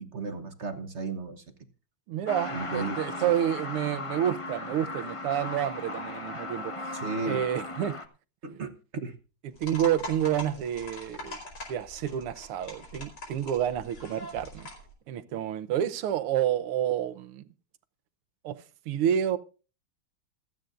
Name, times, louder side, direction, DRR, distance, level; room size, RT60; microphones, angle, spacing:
voice 1, 0.0-1.4 2.5-3.0 6.9-7.4 8.4-8.7 9.0-9.1, right 4 dB, 45° right, 0.9 m, -34 dB
voice 2, 2.1-7.0 7.3-8.0 9.4-11.4 11.7-14.7 15.1-17.4 18.4-18.6 18.9-19.4, right 10 dB, 85° right, 1.8 m, -29 dB
Truck, 2.3-8.0, left 2 dB, 30° left, 0.5 m, -37 dB
sound 1, 9.6-14.9, left 2 dB, 80° left, 5.4 m, -43 dB
27.0 x 9.2 x 2.5 m
omnidirectional pair, 2.4 m